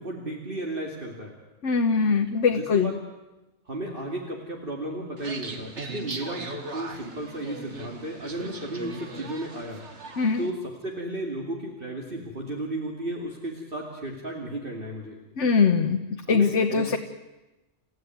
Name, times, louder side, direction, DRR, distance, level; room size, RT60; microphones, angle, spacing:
voice 1, 0.0-1.3 2.5-3.0 3.7-9.8 10.4-15.2 16.3-16.9, right 1 dB, 50° right, 0 dB, 2.9 m, -34 dB
voice 2, 1.6-2.9 10.2-10.4 15.4-16.0 16.3-17.0, left 5 dB, 75° left, 5 dB, 1.5 m, -22 dB
sound 1, 5.2-10.5, right 2 dB, 70° right, 2.3 m, -39 dB
30.0 x 15.5 x 9.4 m, 1.1 s
omnidirectional pair, 1.2 m